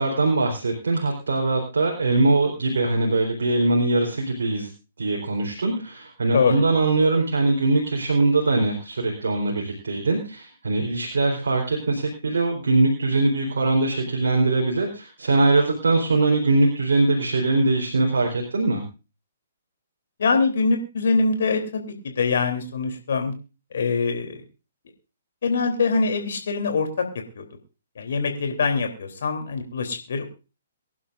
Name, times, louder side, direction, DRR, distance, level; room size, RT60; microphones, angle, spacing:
voice 1, 0.0-4.7 5.0-18.8, right 2 dB, 70° right, 1 dB, 3.8 m, -22 dB
voice 2, 6.3-6.6 20.2-23.3 23.7-24.4 25.4-27.0 27.3-27.5 28.0-30.3, left 4 dB, 60° left, 5 dB, 3.3 m, -23 dB
24.0 x 11.5 x 2.6 m, 0.32 s
figure-of-eight pair, 125°, 0 cm